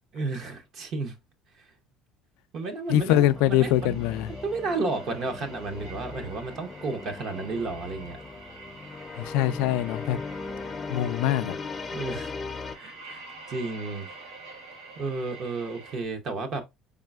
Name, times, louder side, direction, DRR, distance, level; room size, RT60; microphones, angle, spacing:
voice 1, 0.1-1.2 1.6-1.7 2.5-4.0 4.4-8.2 11.9-12.3 12.7-13.2 13.5-14.1 15.0-16.6, right 3 dB, 50° right, 0.7 m, -32 dB
voice 2, 2.9-4.3 9.2-10.2 10.9-11.5, left 12 dB, 85° left, 0.3 m, -23 dB
sound 1, 2.9-16.0, right 3 dB, 90° right, 1.1 m, -47 dB
sound 2, 3.2-12.8, left 4 dB, 25° left, 0.5 m, -38 dB
4.0 x 3.6 x 2.3 m
cardioid pair, 125°, 0 cm